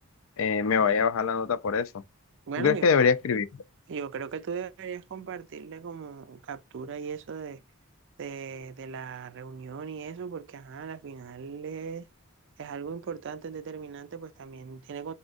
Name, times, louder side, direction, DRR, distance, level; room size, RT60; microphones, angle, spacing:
voice 1, 0.4-1.9 2.6-3.5, left 5 dB, 65° left, 0.4 m, -23 dB
voice 2, 2.5-2.9 3.9-7.6 8.2-12.1 12.6-15.1, right 6 dB, 60° right, 0.4 m, -38 dB
4.2 x 3.5 x 2.5 m
head